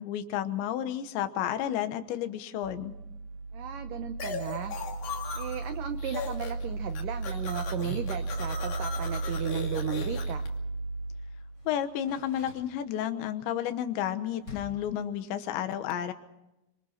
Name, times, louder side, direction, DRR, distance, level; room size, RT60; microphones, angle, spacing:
voice 1, 0.0-2.9 11.7-16.1, left 10 dB, 85° left, 10 dB, 3.5 m, -31 dB
sound 1, 2.6-11.7, right 3 dB, 55° right, 3.1 m, -35 dB
voice 2, 3.5-4.8 5.4-10.4, right 10 dB, 85° right, 9 dB, 1.9 m, -36 dB
sound 2, 4.2-5.7 6.0-6.6 6.9-10.5, left 5 dB, 60° left, 4.0 m, -38 dB
Door, 9.8-10.4 11.5-13.2 14.4-14.9, left 3 dB, 25° left, 5.7 m, -48 dB
26.5 x 26.0 x 4.4 m, 0.94 s
omnidirectional pair, 5.0 m